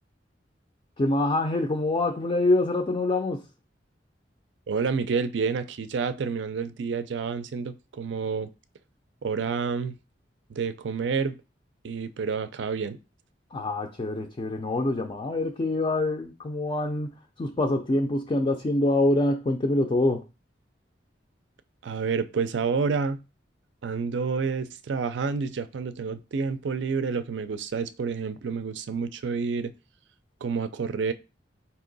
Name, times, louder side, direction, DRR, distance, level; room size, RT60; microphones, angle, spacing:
voice 1, 1.0-3.5 13.5-20.3, left 2 dB, 30° left, 0.4 m, -25 dB
voice 2, 4.7-8.5 9.2-9.9 10.5-11.4 11.8-13.0 21.8-23.2 23.8-29.7 30.4-31.1, right 5 dB, 70° right, 0.4 m, -29 dB
4.5 x 2.9 x 3.9 m
head